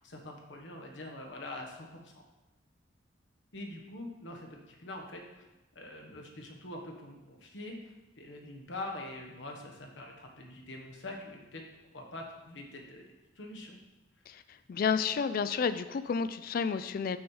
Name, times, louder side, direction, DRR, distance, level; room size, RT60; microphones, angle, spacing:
voice 1, 0.0-2.2 3.5-5.4 5.7-11.6 11.9-13.0 13.4-13.8, left 1 dB, 75° left, 1 dB, 1.2 m, -44 dB
voice 2, 14.7-17.2, left 6 dB, 50° left, 12 dB, 0.3 m, -30 dB
6.2 x 4.7 x 5.5 m, 1.0 s
head